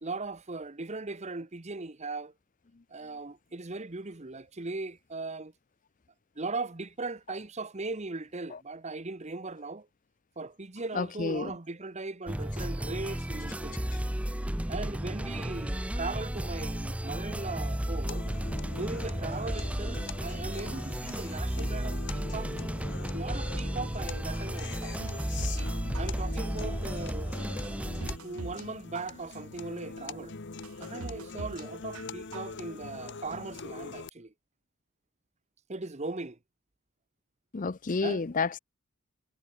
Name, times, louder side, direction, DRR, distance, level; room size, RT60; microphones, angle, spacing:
voice 1, 0.0-2.3 2.9-5.5 6.4-9.9 10.4-13.8 14.7-18.2 18.7-22.5 23.1-25.0 26.0-27.5 28.2-30.3 30.8-34.3 35.7-36.4 38.0-38.2, right 3 dB, 30° right, 1.0 m, -38 dB
voice 2, 10.9-11.6 37.5-38.6, left 4 dB, 35° left, 0.5 m, -30 dB
sound 1, 12.3-28.2, equal, 5° right, 0.6 m, -33 dB
sound 2, 18.1-34.1, left 4 dB, 50° left, 0.9 m, -43 dB
sound 3, 24.6-25.7 25.9-26.6 27.1-27.2 27.6-28.7 28.9-29.6 30.1-30.2 30.6-31.7 31.9-32.6 32.9-33.0, right 3 dB, 75° right, 1.0 m, -42 dB
head